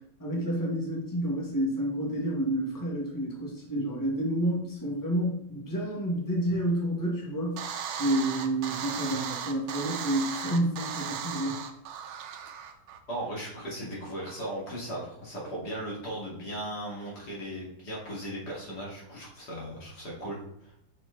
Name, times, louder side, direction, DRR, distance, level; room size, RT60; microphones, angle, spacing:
voice 1, 0.2-7.7 8.0-11.6, right 1 dB, 10° left, -3 dB, 1.5 m, -29 dB
sound 1, 7.6-13.0, right 8 dB, 75° right, 1.3 m, -36 dB
voice 2, 13.1-20.7, right 1 dB, 65° left, -5 dB, 2.9 m, -37 dB
6.2 x 4.4 x 4.0 m, 0.75 s
omnidirectional pair, 1.9 m